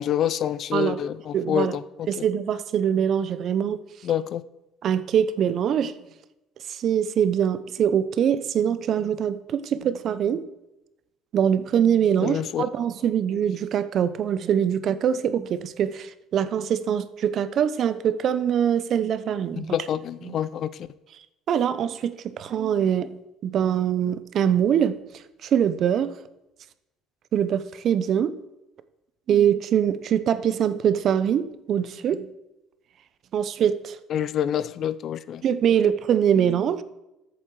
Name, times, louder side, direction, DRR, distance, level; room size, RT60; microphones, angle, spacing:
voice 1, 0.0-2.1 4.0-4.4 12.2-12.6 19.6-20.9 34.1-35.4, left 10 dB, 50° left, 16 dB, 0.5 m, -27 dB
voice 2, 1.3-1.7 2.1-3.8 4.8-5.9 6.7-10.5 11.3-19.7 20.3-20.4 21.5-23.1 23.4-26.1 27.3-28.4 29.3-32.3 33.3-34.0 35.4-36.8, right 9 dB, 50° right, 14 dB, 0.7 m, -23 dB
13.5 x 8.2 x 4.8 m, 0.93 s
cardioid pair, 130°, 0 cm